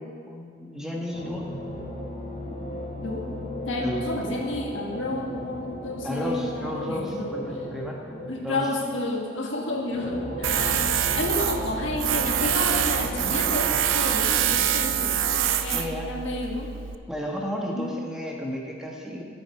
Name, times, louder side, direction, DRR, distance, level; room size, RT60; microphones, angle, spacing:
voice 1, 0.0-1.4 3.8-4.0 6.0-8.0 8.4-8.6 15.7-16.1 17.1-19.2, left 1 dB, 5° right, -2 dB, 1.3 m, -32 dB
sound 1, 1.1-8.7 9.6-14.8, equal, 40° left, 1.7 m, -36 dB
voice 2, 3.6-7.3 8.3-16.7 17.8-17.9, left 2 dB, 80° left, 0 dB, 1.6 m, -31 dB
Tools, 10.4-17.0, right 9 dB, 85° right, 0.5 m, -25 dB
12.5 x 7.5 x 4.7 m, 2.1 s
head